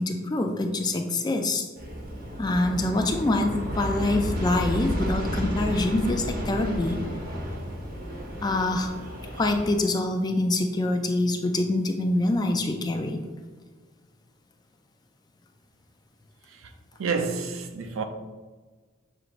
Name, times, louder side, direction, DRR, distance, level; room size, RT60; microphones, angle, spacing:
voice 1, 0.0-1.6 2.4-7.0 8.4-8.9 9.3-13.2, left 2 dB, 20° left, 0.3 m, -25 dB
Aircraft, 1.8-9.8, equal, 45° right, 0.8 m, -32 dB
voice 2, 17.0-18.0, right 5 dB, 85° right, 0.5 m, -29 dB
6.9 x 3.0 x 2.5 m
head